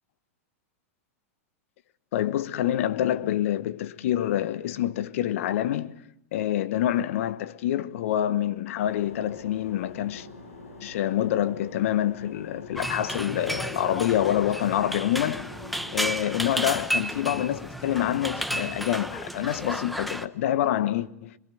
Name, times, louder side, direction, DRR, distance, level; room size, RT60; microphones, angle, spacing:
voice 1, 2.1-6.0 6.3-10.3 10.8-15.5 15.9-21.4, left 12 dB, 65° left, 1.2 m, -26 dB
sound 1, 8.8-16.7, left 3 dB, 90° left, 7.4 m, -44 dB
sound 2, 12.8-20.3, right 1 dB, ahead, 1.1 m, -32 dB
27.0 x 22.0 x 9.3 m
hypercardioid pair, 125°, 8 cm